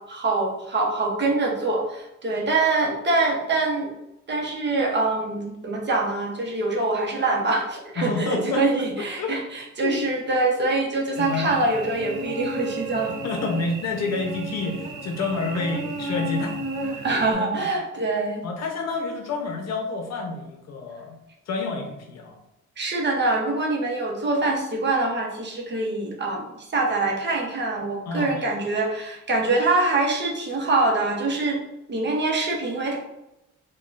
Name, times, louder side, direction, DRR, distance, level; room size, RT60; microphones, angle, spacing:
voice 1, 0.1-3.9 4.3-13.1 17.0-18.4 22.8-31.6 31.9-33.0, right 2 dB, 35° right, -1 dB, 0.8 m, -24 dB
voice 2, 8.0-8.6 9.0-9.3 9.8-10.0 11.2-11.6 13.2-17.5 18.4-21.2 21.5-22.4 28.1-28.4, left 3 dB, 60° left, 2 dB, 0.7 m, -29 dB
Cricket / Buzz, 11.2-17.3, right 1 dB, 80° right, 0.5 m, -33 dB
3.5 x 2.2 x 2.4 m, 0.90 s
cardioid pair, 90°, 30 cm